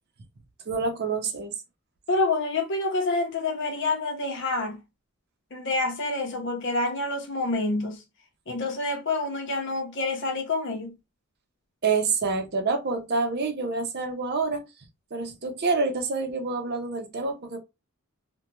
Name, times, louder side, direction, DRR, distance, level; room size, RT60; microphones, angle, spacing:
voice 1, 0.7-1.5 11.8-14.6 15.1-17.6, right 4 dB, 50° right, 0.6 m, -27 dB
voice 2, 2.1-4.8 5.5-8.0 8.5-10.9, left 2 dB, 55° left, 0.7 m, -27 dB
2.4 x 2.2 x 2.9 m
head